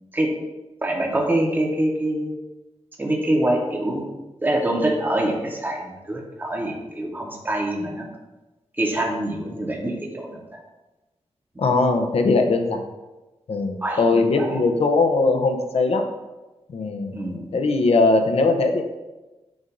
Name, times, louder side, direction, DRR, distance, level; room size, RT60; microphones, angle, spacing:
voice 1, 0.8-2.3 3.0-4.1 4.4-8.1 8.8-10.4 13.8-14.6 17.1-17.5, right 1 dB, 15° right, 0 dB, 0.9 m, -25 dB
voice 2, 11.6-12.8 13.5-16.0 16.7-17.3 17.5-18.8, left 3 dB, 65° left, 5 dB, 0.7 m, -20 dB
7.0 x 2.6 x 5.2 m, 1.1 s
wide cardioid pair, 135°, 11 cm